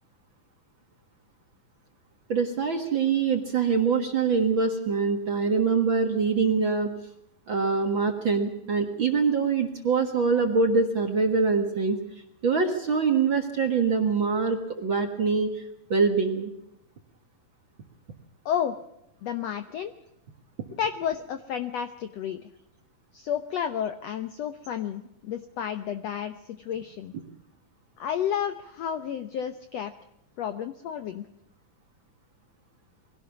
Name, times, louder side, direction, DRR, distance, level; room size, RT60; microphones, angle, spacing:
voice 1, 2.3-6.9 7.5-12.0 12.4-15.6 15.9-16.5, right 5 dB, 45° right, 5 dB, 1.7 m, -24 dB
voice 2, 18.4-18.7 19.2-19.9 20.8-22.5 23.1-27.1 28.0-29.9 30.4-31.3, left 9 dB, 75° left, 9 dB, 1.5 m, -31 dB
22.5 x 17.0 x 7.1 m, 0.82 s
omnidirectional pair, 4.1 m